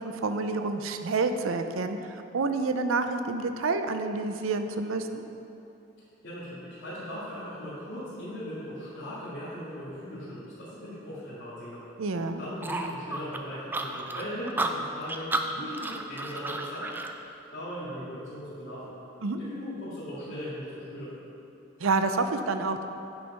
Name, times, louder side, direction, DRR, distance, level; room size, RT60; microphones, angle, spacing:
voice 1, 0.0-5.2 12.0-12.4 19.2-19.4 21.8-22.9, right 3 dB, 90° right, 8 dB, 0.5 m, -28 dB
voice 2, 6.2-11.9 12.4-16.9 17.2-18.9 19.4-21.2, equal, 65° left, -14 dB, 2.2 m, -39 dB
sound 1, 12.6-17.1, right 2 dB, 10° right, 0.3 m, -32 dB
9.0 x 5.9 x 5.0 m, 2.8 s
head